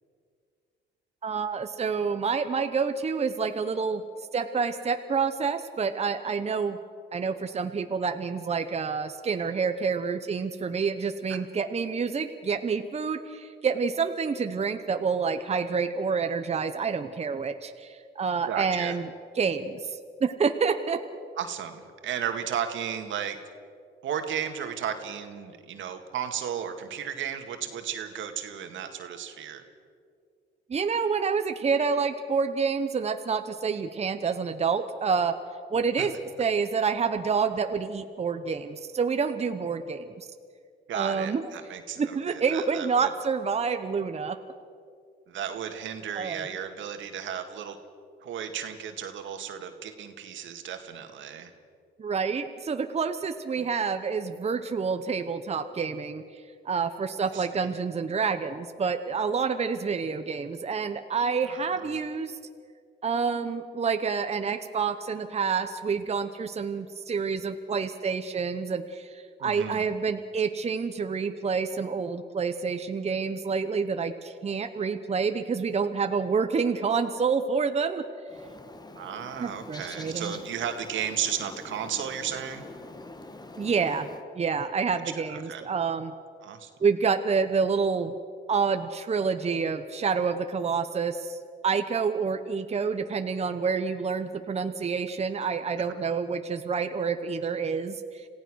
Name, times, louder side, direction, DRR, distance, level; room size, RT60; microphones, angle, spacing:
voice 1, 1.2-4.0 4.3-6.8 7.1-19.0 19.4-21.0 30.7-35.4 35.7-36.1 36.4-40.3 40.9-41.4 42.0-44.4 46.1-46.4 52.0-62.4 63.0-78.0 79.4-80.3 83.6-84.1 84.3-86.1 86.8-88.1 88.5-91.4 91.6-98.3, right 5 dB, 30° right, 8 dB, 1.0 m, -28 dB
voice 2, 18.5-19.0 21.4-23.4 24.0-29.6 36.0-36.1 40.9-43.1 45.3-47.8 48.2-51.5 53.6-53.7 57.3-57.7 61.5-61.9 69.4-69.8 78.9-82.7 84.9-85.0 85.3-85.6 86.4-86.7, right 8 dB, 75° right, 6 dB, 2.0 m, -34 dB
Bird, 78.3-84.2, left 2 dB, 20° left, 1.5 m, -45 dB
27.0 x 16.0 x 6.4 m, 2.2 s
cardioid pair, 90°, 20 cm